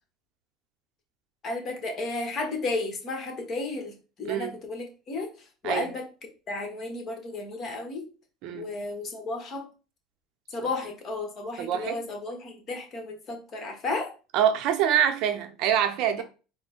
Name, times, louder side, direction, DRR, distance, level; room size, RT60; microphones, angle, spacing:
voice 1, 1.4-6.1 6.5-8.1 8.5-9.6 10.5-14.1, left 3 dB, 40° left, 1.4 m, -33 dB
voice 2, 11.6-12.0 14.3-16.2, right 9 dB, 65° right, 0.7 m, -25 dB
4.1 x 2.1 x 4.4 m
supercardioid pair, 100°, 0 cm